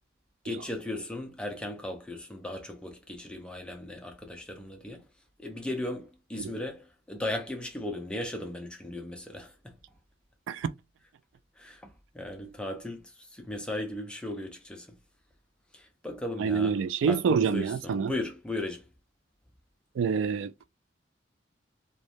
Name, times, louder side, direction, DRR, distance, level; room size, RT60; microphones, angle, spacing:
voice 1, 0.4-5.0 5.4-9.7 11.6-11.9 12.1-13.0 13.3-15.0 15.7-16.8 17.1-18.8, left 1 dB, 5° left, 0.6 m, -36 dB
voice 2, 16.4-18.1 20.0-20.7, right 6 dB, 90° right, 0.3 m, -27 dB
3.0 x 2.1 x 2.5 m
head